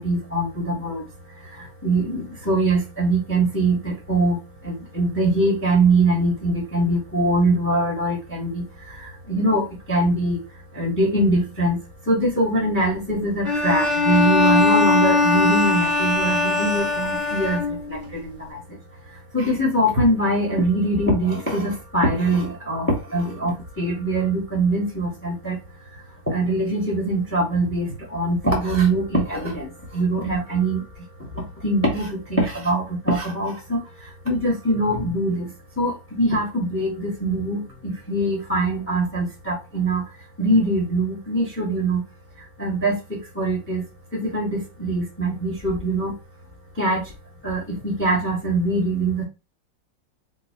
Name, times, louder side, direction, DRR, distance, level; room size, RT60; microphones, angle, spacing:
voice 1, 0.0-10.4 10.7-11.8 12.0-18.8 19.3-25.6 25.9-40.1 40.4-42.0 42.4-43.8 44.1-46.1 46.7-47.1 47.4-49.2, right 1 dB, 10° left, -1 dB, 0.9 m, -23 dB
Bowed string instrument, 13.4-18.0, left 3 dB, 15° right, 0.9 m, -20 dB
4.8 x 2.2 x 2.8 m, 0.28 s
omnidirectional pair, 2.1 m